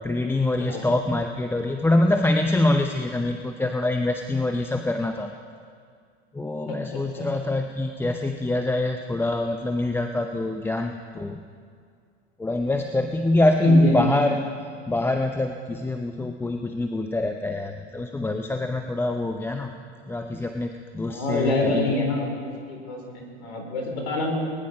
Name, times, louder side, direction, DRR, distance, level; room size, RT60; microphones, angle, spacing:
voice 1, 0.0-5.3 6.3-11.4 12.4-14.4 14.9-19.7 20.1-21.9, left 2 dB, 5° left, 5 dB, 0.6 m, -24 dB
voice 2, 13.6-14.2 21.1-22.3 22.7-24.3, left 2 dB, 60° left, 1 dB, 4.5 m, -26 dB
20.0 x 10.5 x 5.4 m, 2.2 s
hypercardioid pair, 95°, 35 cm